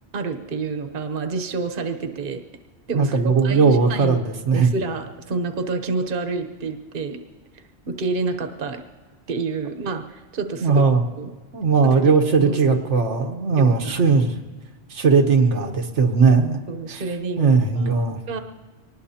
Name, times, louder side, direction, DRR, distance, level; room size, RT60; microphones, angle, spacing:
voice 1, 0.1-2.4 2.9-4.2 4.5-7.2 7.9-8.8 9.3-10.8 11.2-11.3 11.9-12.8 13.6-14.0 16.7-17.9 18.3-18.4, right 4 dB, 50° right, 6 dB, 1.1 m, -28 dB
voice 2, 2.9-4.7 10.6-11.0 11.5-14.3 14.9-16.6 16.9-17.0 17.4-18.2, right 5 dB, 85° right, 3 dB, 1.4 m, -18 dB
24.0 x 19.5 x 2.8 m, 1.4 s
omnidirectional pair, 1.2 m